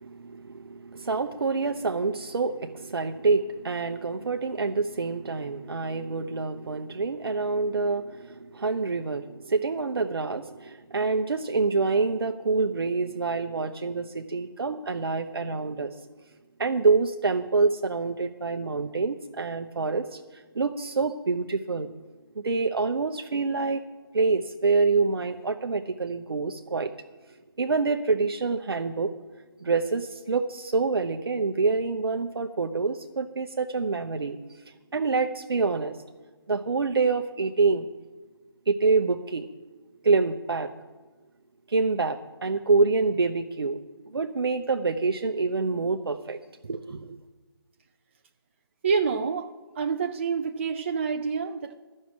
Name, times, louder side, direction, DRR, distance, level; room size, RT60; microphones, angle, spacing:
voice 1, 0.0-15.9 16.6-21.9 22.4-23.8 24.1-26.9 27.6-29.1 29.6-34.4 34.9-36.0 36.5-37.9 38.7-39.5 40.0-40.7 41.7-43.8 44.1-47.2, right 4 dB, 65° right, 5 dB, 0.7 m, -26 dB
voice 2, 48.8-49.5 49.8-51.8, right 5 dB, 30° right, 5 dB, 0.4 m, -27 dB
11.5 x 6.4 x 8.2 m, 1.3 s
figure-of-eight pair, 150°, 13 cm